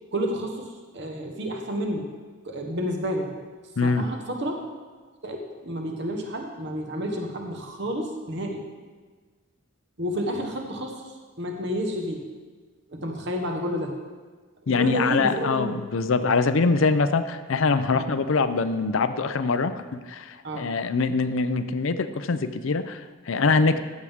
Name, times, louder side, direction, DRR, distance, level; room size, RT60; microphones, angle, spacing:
voice 1, 0.1-2.1 2.4-3.4 3.8-4.7 5.2-8.6 10.0-11.0 11.4-12.3 12.9-14.0 14.6-15.8 17.9-18.1 20.4-20.7, equal, 55° right, 2 dB, 1.2 m, -30 dB
voice 2, 14.7-23.8, left 4 dB, 70° left, 11 dB, 0.5 m, -24 dB
14.5 x 7.3 x 3.6 m, 1.4 s
head